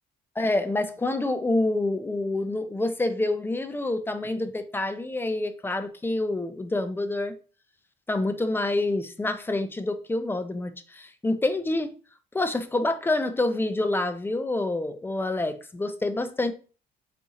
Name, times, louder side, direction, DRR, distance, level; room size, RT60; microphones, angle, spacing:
voice 1, 0.4-7.4 8.1-11.9 12.3-16.5, left 2 dB, 15° left, 0.5 m, -27 dB
4.2 x 2.8 x 3.6 m
cardioid pair, 110°, 17 cm